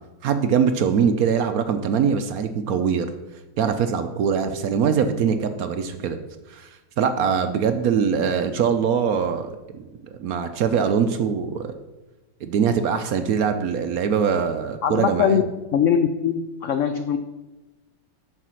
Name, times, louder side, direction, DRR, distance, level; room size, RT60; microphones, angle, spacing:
voice 1, 0.2-3.1 3.6-6.2 6.5-6.7 7.0-11.7 12.4-15.4, right 7 dB, 65° right, 9 dB, 0.9 m, -22 dB
voice 2, 14.8-15.4 15.7-17.2, left 7 dB, 85° left, 8 dB, 0.6 m, -21 dB
9.9 x 4.9 x 6.3 m, 1.1 s
omnidirectional pair, 1.9 m